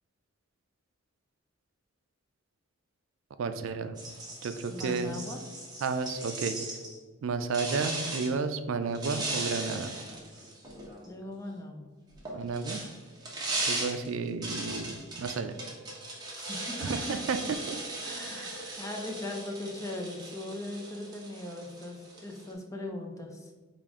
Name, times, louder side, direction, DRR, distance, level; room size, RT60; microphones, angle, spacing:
voice 1, 3.4-4.0 4.4-5.2 5.8-6.8 7.2-9.9 12.3-12.8 13.7-15.5 16.8-17.8 18.4-18.7, right 4 dB, 70° right, 9 dB, 0.3 m, -32 dB
sound 1, 4.0-7.0 7.5-8.3 8.9-11.1 12.1-22.5, right 2 dB, 20° right, 0.9 m, -38 dB
voice 2, 4.7-5.4 11.1-11.9 16.3-17.1 18.0-23.5, left 2 dB, 15° left, 1 dB, 0.5 m, -39 dB
5.1 x 2.5 x 3.5 m, 1.4 s
head